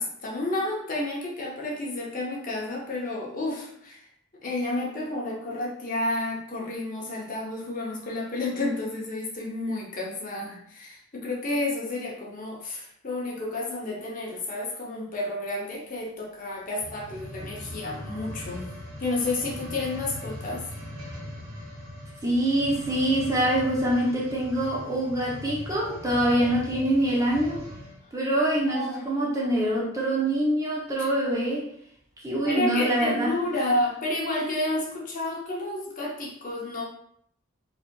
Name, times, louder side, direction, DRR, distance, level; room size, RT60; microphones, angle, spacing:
voice 1, 0.0-4.1 4.4-18.7 19.0-20.7 28.6-29.0 32.5-36.8, left 2 dB, 40° left, -2 dB, 0.7 m, -31 dB
sound 1, 16.7-28.0 28.6-28.7, left 1 dB, 85° right, 0.9 m, -40 dB
voice 2, 22.2-27.6 28.1-31.7 32.2-33.4, right 1 dB, 15° right, -4 dB, 0.6 m, -25 dB
4.7 x 2.8 x 2.2 m, 0.69 s
head